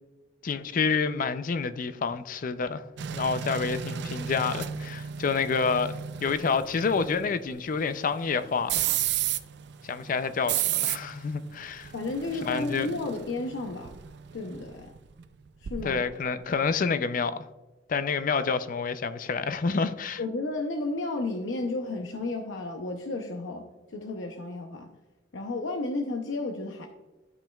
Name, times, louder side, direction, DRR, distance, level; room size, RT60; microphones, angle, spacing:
voice 1, 0.4-2.8 3.1-8.9 9.8-11.9 12.4-12.9 15.8-17.5 17.9-20.2, left 5 dB, 45° left, 0.4 m, -28 dB
sound 1, 3.0-16.2 16.5-16.7, right 10 dB, 60° right, 0.4 m, -34 dB
voice 2, 11.9-13.9 14.3-14.9 15.6-16.0 20.2-24.9 25.3-26.9, left 2 dB, 90° left, 0.7 m, -32 dB
12.0 x 5.2 x 2.3 m
head